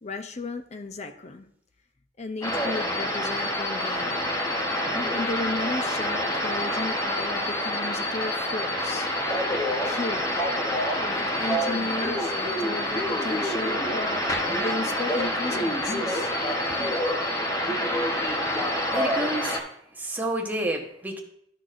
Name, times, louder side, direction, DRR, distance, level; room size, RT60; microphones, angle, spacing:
voice 1, 0.0-1.5 2.2-4.3 5.1-9.1 9.8-10.4 11.0-14.3 14.5-16.3, left 2 dB, 35° left, 8 dB, 0.6 m, -34 dB
sound 1, 2.4-19.6, left 1 dB, 20° left, 1.0 m, -27 dB
voice 2, 18.9-19.6 20.0-21.2, right 1 dB, 10° right, 0 dB, 1.0 m, -29 dB
11.5 x 6.1 x 2.5 m, 0.71 s
head